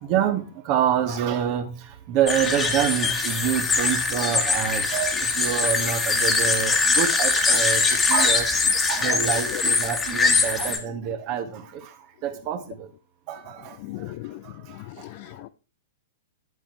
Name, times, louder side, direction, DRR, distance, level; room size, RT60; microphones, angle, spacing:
voice 1, 0.0-8.5 8.9-11.9 12.2-12.9 13.3-14.1 14.4-15.1, right 9 dB, 40° right, 1.4 m, -27 dB
sound 1, 2.3-10.8, left 4 dB, 15° left, 1.5 m, -22 dB
voice 2, 13.8-15.5, left 17 dB, 45° left, 0.6 m, -37 dB
10.0 x 8.1 x 3.0 m
figure-of-eight pair, 105°, 0 cm